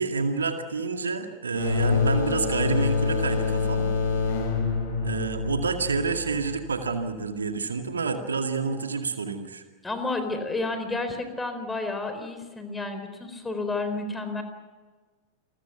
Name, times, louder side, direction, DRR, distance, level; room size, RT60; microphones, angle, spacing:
voice 1, 0.0-3.9 5.0-9.6, right 4 dB, 75° right, 6 dB, 2.2 m, -28 dB
sound 1, 1.5-7.0, left 4 dB, 55° left, 6.7 m, -26 dB
voice 2, 9.8-14.4, left 3 dB, 10° left, 7 dB, 4.2 m, -31 dB
28.5 x 21.5 x 5.9 m, 1.4 s
figure-of-eight pair, 90°, 0 cm